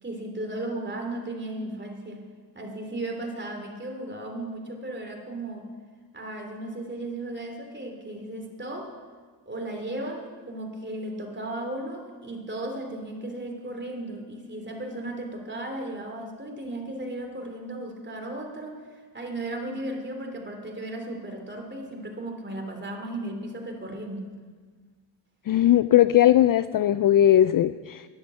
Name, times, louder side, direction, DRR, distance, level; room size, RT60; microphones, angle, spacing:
voice 1, 0.0-2.3 2.5-5.7 6.1-9.0 9.5-24.3, right 1 dB, 25° right, 2 dB, 3.0 m, -35 dB
voice 2, 25.5-28.1, left 12 dB, 50° left, 14 dB, 0.4 m, -19 dB
11.0 x 10.0 x 7.6 m, 1.5 s
cardioid pair, 65°, 46 cm